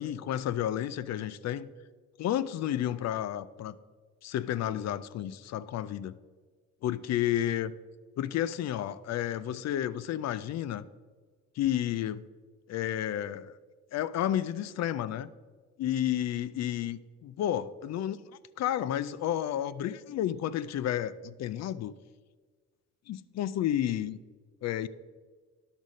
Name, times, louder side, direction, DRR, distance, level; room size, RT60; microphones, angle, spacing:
voice 1, 0.0-1.7 2.2-3.8 4.2-6.2 6.8-7.7 8.2-10.8 11.6-12.3 12.7-13.5 13.9-15.3 15.8-18.2 18.6-21.9 23.1-24.2 24.6-24.9, left 11 dB, 60° left, 16 dB, 0.4 m, -31 dB
10.5 x 6.2 x 4.0 m, 1.4 s
cardioid pair, 90°, 30 cm